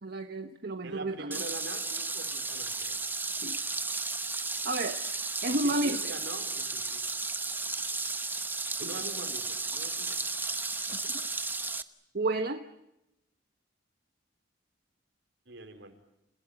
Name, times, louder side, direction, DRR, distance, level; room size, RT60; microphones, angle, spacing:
voice 1, 0.0-1.4 3.2-3.6 4.6-5.0 5.4-6.1 8.8-8.9 10.9-11.2 12.1-12.6, right 2 dB, 55° right, 6 dB, 1.2 m, -32 dB
voice 2, 0.8-3.0 3.3-3.4 5.6-7.0 7.6-7.7 8.8-10.3 15.5-15.9, right 2 dB, 80° right, 5 dB, 4.6 m, -44 dB
sound 1, 1.3-11.8, right 3 dB, 10° right, 1.0 m, -34 dB
29.5 x 17.0 x 10.0 m, 0.88 s
head